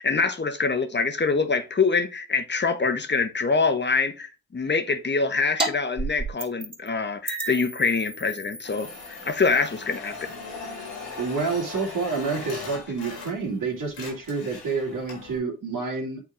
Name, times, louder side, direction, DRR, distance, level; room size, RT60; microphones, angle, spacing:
voice 1, 0.0-10.3, left 4 dB, 30° left, 1.3 m, -25 dB
sound 1, 5.6-5.7 6.0-6.9 7.3-12.4, right 2 dB, 15° right, 2.9 m, -35 dB
sound 2, 8.6-13.6 13.9-15.4, left 4 dB, 85° left, 2.4 m, -39 dB
voice 2, 11.2-16.2, right 4 dB, 55° right, 2.5 m, -28 dB
8.8 x 3.7 x 3.7 m
hypercardioid pair, 40°, 38 cm